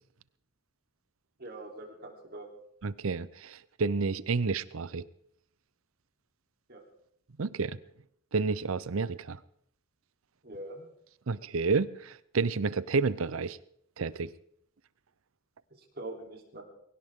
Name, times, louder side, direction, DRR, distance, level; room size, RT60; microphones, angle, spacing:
voice 1, 1.4-2.5 6.7-6.8 10.4-10.9 15.7-16.6, right 2 dB, 50° right, 0 dB, 3.4 m, -43 dB
voice 2, 2.8-5.0 7.4-7.8 8.3-9.4 11.3-13.6 14.0-14.3, right 4 dB, 75° right, 18 dB, 0.6 m, -30 dB
21.0 x 17.5 x 3.7 m, 0.69 s
head